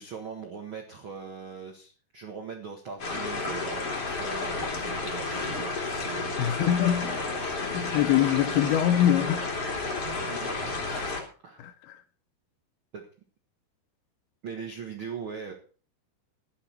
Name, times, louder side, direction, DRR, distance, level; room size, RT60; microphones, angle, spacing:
voice 1, 0.0-6.3 7.0-7.2 10.3-11.2 11.4-11.7 12.9-13.1 14.4-15.5, right 6 dB, 70° right, 1.2 m, -40 dB
sound 1, 3.0-11.2, left 3 dB, 40° left, 3.5 m, -31 dB
voice 2, 6.4-7.1 7.6-9.6 11.6-12.0, left 11 dB, 75° left, 2.7 m, -24 dB
13.0 x 11.0 x 4.4 m
omnidirectional pair, 4.7 m